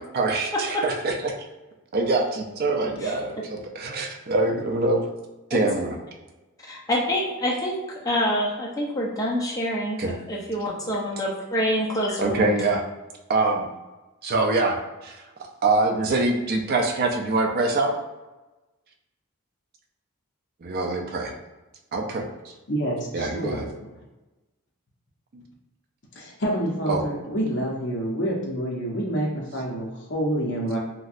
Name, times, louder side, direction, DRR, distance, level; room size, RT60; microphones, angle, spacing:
voice 1, 0.1-1.3 1.9-5.1 5.5-6.0 10.0-10.1 12.2-12.8 13.3-13.7 14.2-15.2 15.6-18.0 20.6-21.3 21.9-22.5 23.1-23.7 25.3-25.4 26.9-27.0, right 2 dB, 45° right, 3 dB, 0.4 m, -24 dB
voice 2, 6.7-7.8 8.0-10.0 10.3-12.6, equal, 15° left, -3 dB, 0.5 m, -26 dB
voice 3, 22.7-23.7 26.2-30.8, right 1 dB, 55° left, -2 dB, 0.7 m, -27 dB
3.0 x 2.6 x 2.4 m, 1.1 s
head